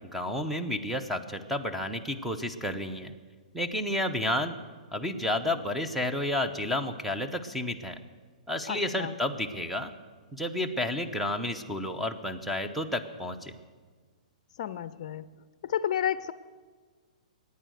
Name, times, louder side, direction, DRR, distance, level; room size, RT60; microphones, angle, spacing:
voice 1, 0.0-3.1 3.5-4.5 4.9-8.0 8.5-9.9 10.3-13.6, left 1 dB, ahead, 6 dB, 0.9 m, -31 dB
voice 2, 8.7-9.1 14.6-15.3 15.6-16.3, left 10 dB, 55° left, 15 dB, 0.5 m, -31 dB
23.5 x 9.5 x 6.5 m, 1.5 s
hypercardioid pair, 140°, 4 cm